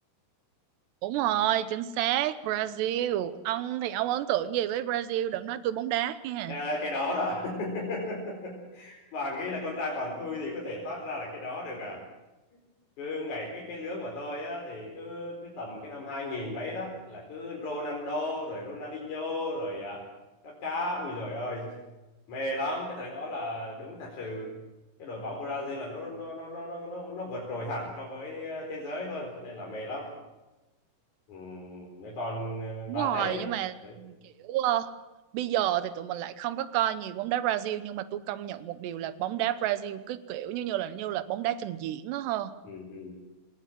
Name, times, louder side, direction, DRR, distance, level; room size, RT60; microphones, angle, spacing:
voice 1, 1.0-6.6 32.9-34.9 35.3-42.5, right 12 dB, 80° right, 14 dB, 3.1 m, -30 dB
voice 2, 6.5-12.0 13.0-20.1 20.4-21.7 22.3-24.5 25.0-30.1 31.3-33.5 33.8-34.0 42.6-43.2, left 1 dB, 45° left, -3 dB, 5.7 m, -35 dB
25.5 x 19.5 x 7.6 m, 1.1 s
omnidirectional pair, 4.9 m